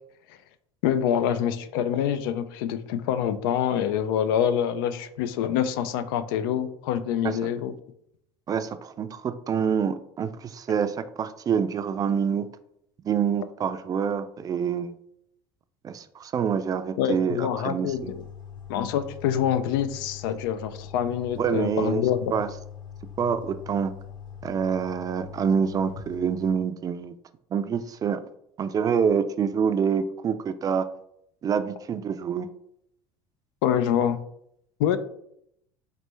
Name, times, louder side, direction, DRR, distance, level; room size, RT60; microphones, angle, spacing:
voice 1, 0.8-7.7 17.0-18.2 18.7-22.3 33.6-34.2 34.8-35.0, left 9 dB, 90° left, 12 dB, 0.4 m, -26 dB
voice 2, 8.5-12.5 13.0-14.9 15.8-18.1 21.4-22.0 22.3-22.5 23.2-23.9 24.4-27.1 27.5-28.2 28.6-30.9 31.4-32.5, right 7 dB, 35° right, 11 dB, 0.3 m, -26 dB
sound 1, 17.9-26.6, left 8 dB, 40° left, 0.9 m, -42 dB
4.1 x 3.3 x 3.1 m, 0.74 s
supercardioid pair, 100°, 11 cm